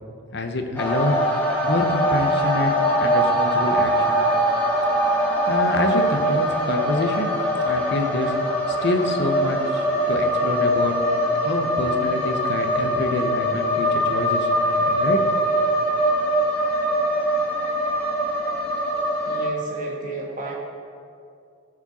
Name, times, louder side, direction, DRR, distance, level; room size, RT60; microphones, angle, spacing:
voice 1, 0.3-1.1 1.6-2.7 3.0-4.2 5.5-8.3 8.7-10.9 11.4-14.5 14.8-15.2, left 2 dB, 55° left, 5 dB, 0.8 m, -26 dB
sound 1, 0.8-19.5, equal, 10° left, 1.3 m, -22 dB
voice 2, 19.3-20.5, right 2 dB, 40° right, -3 dB, 1.7 m, -33 dB
14.5 x 4.9 x 4.2 m, 2.4 s
head